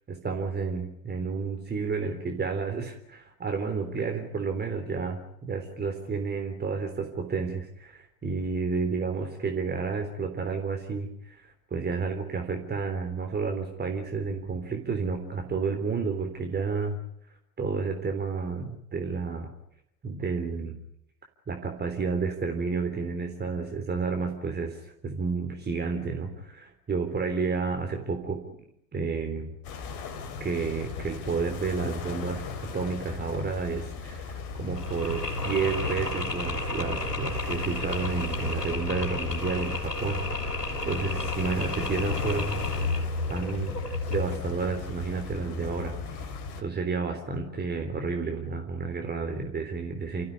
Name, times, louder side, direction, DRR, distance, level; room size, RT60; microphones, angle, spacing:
voice 1, 0.1-17.0 17.6-19.5 20.0-20.8 21.5-28.4 28.9-29.5 30.4-42.6 43.3-50.2, right 4 dB, 20° right, 4 dB, 3.6 m, -31 dB
sound 1, 29.6-46.6, left 5 dB, 45° left, 3.4 m, -38 dB
Mechanisms, 34.7-44.5, left 2 dB, 85° left, 3.8 m, -32 dB
30.0 x 15.5 x 9.8 m, 0.75 s
figure-of-eight pair, 80°, 47 cm